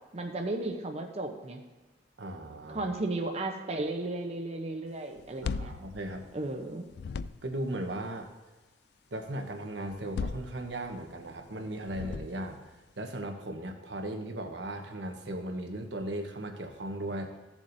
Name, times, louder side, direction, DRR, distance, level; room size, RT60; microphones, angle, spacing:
voice 1, 0.1-1.6 2.7-5.7 6.3-6.8, right 2 dB, 35° right, 3 dB, 0.8 m, -34 dB
voice 2, 2.2-2.9 5.4-6.2 7.4-8.3 9.1-17.3, right 1 dB, 80° right, 4 dB, 1.1 m, -37 dB
sound 1, 5.2-6.6 6.9-7.7 9.9-11.1 11.8-12.6, left 5 dB, 65° left, 0.3 m, -37 dB
15.5 x 7.3 x 2.7 m, 1.1 s
head